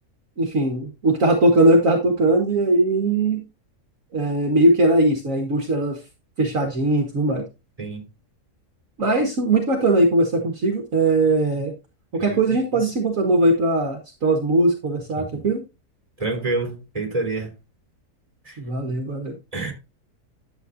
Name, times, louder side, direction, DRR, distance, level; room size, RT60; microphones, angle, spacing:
voice 1, 0.4-3.4 4.1-6.0 6.4-7.4 9.0-11.7 12.1-15.6 18.6-19.3, right 2 dB, 55° right, 1.8 m, -20 dB
voice 2, 15.2-15.5 16.2-17.5 18.4-18.6 19.5-19.7, right 3 dB, 20° right, 3.4 m, -28 dB
11.5 x 7.9 x 2.6 m
omnidirectional pair, 1.7 m